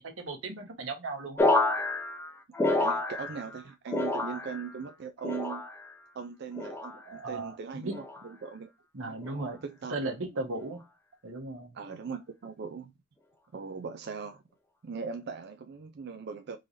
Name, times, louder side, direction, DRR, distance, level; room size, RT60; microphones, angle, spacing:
voice 1, 0.0-1.5 7.1-8.0 8.9-9.6 9.9-10.8 11.2-11.8, right 2 dB, 90° right, 1.2 m, -36 dB
sound 1, 1.4-3.6 3.9-4.7 5.2-5.9 6.6-7.0 7.9-8.3 9.2-9.5, left 2 dB, 10° left, 0.6 m, -29 dB
voice 2, 2.7-5.6 6.1-8.7 9.6-10.1 11.7-12.9 13.5-14.4 14.8-16.6, right 5 dB, 55° right, 0.4 m, -39 dB
3.8 x 3.2 x 2.6 m
head